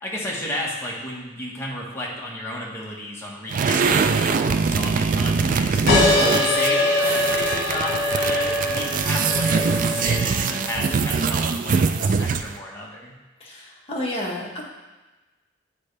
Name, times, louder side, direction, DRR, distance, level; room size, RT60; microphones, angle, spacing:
voice 1, 0.0-5.8 6.1-13.1, left 1 dB, 15° left, -4 dB, 1.3 m, -32 dB
sound 1, 3.5-12.6, right 5 dB, 45° right, 0.3 m, -23 dB
sound 2, 5.9-11.1, left 2 dB, 60° left, 1.7 m, -23 dB
voice 2, 13.4-14.6, left 1 dB, 35° left, -4 dB, 1.4 m, -30 dB
9.0 x 4.2 x 3.3 m, 1.1 s
head